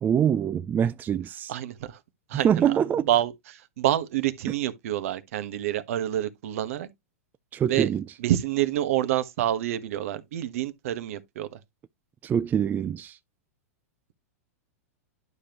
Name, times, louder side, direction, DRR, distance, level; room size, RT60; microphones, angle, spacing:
voice 1, 0.0-1.5 2.4-3.1 7.5-8.0 12.2-13.2, right 8 dB, 20° right, 0.4 m, -24 dB
voice 2, 1.5-2.0 2.3-2.7 3.1-6.9 7.7-7.9 8.2-11.6, right 12 dB, 65° right, 1.3 m, -27 dB
11.0 x 5.2 x 2.9 m
hypercardioid pair, 110°, 8 cm